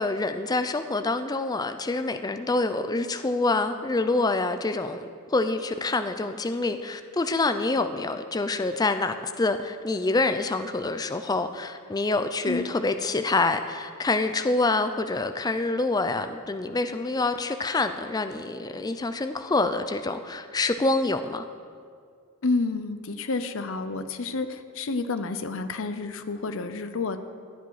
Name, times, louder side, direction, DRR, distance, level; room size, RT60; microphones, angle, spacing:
voice 1, 0.0-21.4, left 3 dB, 15° left, 9 dB, 0.4 m, -26 dB
voice 2, 22.4-27.2, left 3 dB, 65° left, 10 dB, 0.7 m, -29 dB
14.5 x 9.4 x 4.8 m, 2.2 s
head